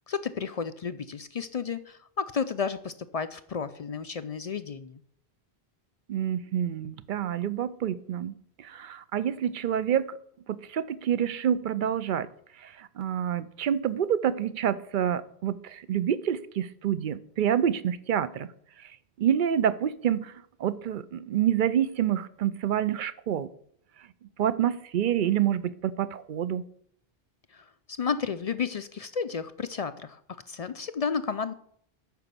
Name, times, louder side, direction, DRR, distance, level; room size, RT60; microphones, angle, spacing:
voice 1, 0.1-5.0 27.5-30.2 30.5-31.5, left 6 dB, 55° left, 0.4 m, -32 dB
voice 2, 6.1-10.1 10.5-12.3 12.6-18.5 19.2-20.3 20.6-23.5 24.4-26.6, right 9 dB, 60° right, 0.7 m, -27 dB
9.3 x 5.9 x 6.7 m
omnidirectional pair, 1.0 m